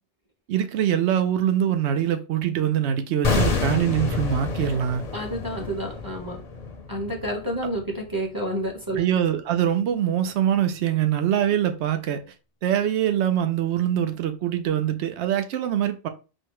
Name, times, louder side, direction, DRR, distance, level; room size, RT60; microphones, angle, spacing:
voice 1, 0.5-5.0 9.0-12.2 12.6-16.1, right 10 dB, 75° right, 0.9 m, -23 dB
sound 1, 3.2-8.3 8.5-8.7, left 4 dB, 40° left, 0.6 m, -28 dB
voice 2, 5.1-6.4 6.9-9.0, right 1 dB, 20° right, 0.9 m, -29 dB
4.5 x 2.2 x 4.6 m
omnidirectional pair, 1.2 m